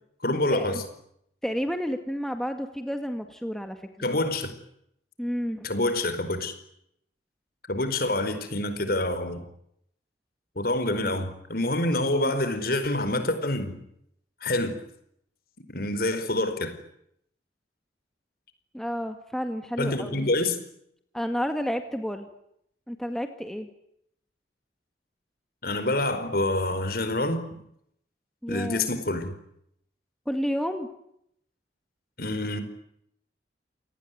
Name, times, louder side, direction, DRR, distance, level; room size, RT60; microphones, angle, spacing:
voice 1, 0.2-0.8 4.0-4.5 5.6-6.5 7.7-9.4 10.5-13.8 14.4-14.8 15.7-16.8 19.8-20.6 25.6-27.4 28.5-29.3 32.2-32.6, left 1 dB, 55° left, 11 dB, 4.8 m, -27 dB
voice 2, 1.4-4.1 5.2-5.7 12.0-12.3 18.7-20.3 21.1-22.3 22.9-23.7 28.4-28.9 30.3-30.9, equal, 5° left, 6 dB, 2.0 m, -31 dB
28.5 x 19.0 x 9.4 m, 0.75 s
head